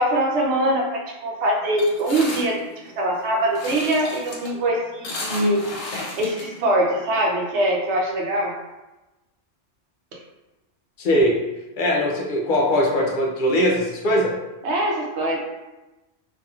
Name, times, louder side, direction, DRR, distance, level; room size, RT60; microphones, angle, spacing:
voice 1, 0.0-2.6 3.0-5.9 6.2-8.5 14.6-15.4, right 1 dB, 75° right, -1 dB, 0.9 m, -22 dB
sound 1, 1.8-7.1, left 2 dB, 75° left, 0.9 m, -34 dB
voice 2, 11.0-11.3 11.8-14.3, equal, 60° left, -1 dB, 0.6 m, -20 dB
2.8 x 2.6 x 2.3 m, 1.0 s
omnidirectional pair, 1.2 m